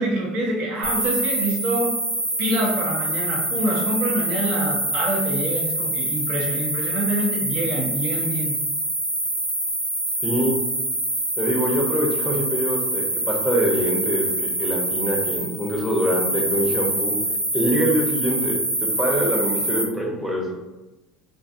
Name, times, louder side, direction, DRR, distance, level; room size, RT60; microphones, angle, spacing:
voice 1, 0.0-2.0 2.4-8.5, right 1 dB, 50° right, -1 dB, 0.7 m, -26 dB
sound 1, 0.8-19.8, right 1 dB, 90° right, 0.7 m, -25 dB
voice 2, 10.2-10.6 11.4-17.2 17.5-20.5, equal, 5° right, -2 dB, 0.7 m, -24 dB
2.5 x 2.3 x 2.5 m, 1.0 s
figure-of-eight pair, 65°, 3 cm